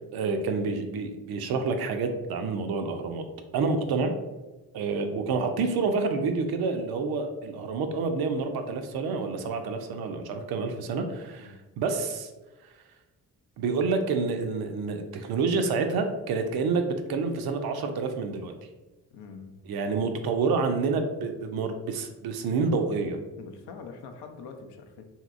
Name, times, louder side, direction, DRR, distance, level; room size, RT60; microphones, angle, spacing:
voice 1, 0.1-3.2 3.5-4.1 4.7-12.3 13.6-18.5 19.7-23.2, right 4 dB, 55° right, 6 dB, 0.5 m, -28 dB
voice 2, 19.1-19.5 23.4-25.0, left 5 dB, 60° left, 5 dB, 0.6 m, -44 dB
2.9 x 2.7 x 2.5 m, 1.2 s
hypercardioid pair, 40°, 45 cm